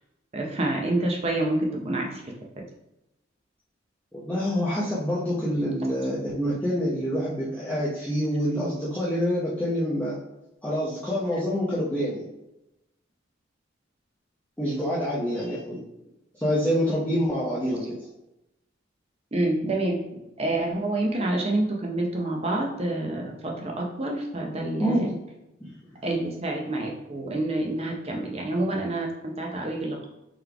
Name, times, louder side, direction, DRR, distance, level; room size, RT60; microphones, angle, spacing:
voice 1, 0.3-2.3 19.3-20.0 20.4-25.1 26.0-30.1, right 1 dB, 30° right, 0 dB, 0.7 m, -27 dB
voice 2, 4.1-10.2 10.6-12.3 14.6-15.8 16.4-17.8 24.8-25.0 25.6-25.8, equal, 10° left, -9 dB, 0.7 m, -26 dB
3.9 x 3.2 x 3.4 m, 0.90 s
head